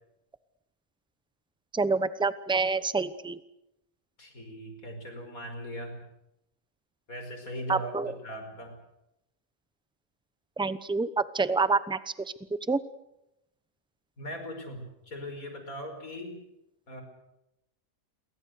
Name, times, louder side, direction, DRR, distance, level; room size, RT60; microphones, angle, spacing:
voice 1, 1.7-3.4 7.7-8.1 10.6-12.3 12.7-12.8, right 4 dB, 5° right, 14 dB, 0.7 m, -27 dB
voice 2, 4.2-6.1 7.1-8.8 14.2-16.4 16.9-17.0, equal, 75° left, 5 dB, 5.7 m, -39 dB
29.0 x 23.5 x 6.7 m, 0.86 s
omnidirectional pair, 1.5 m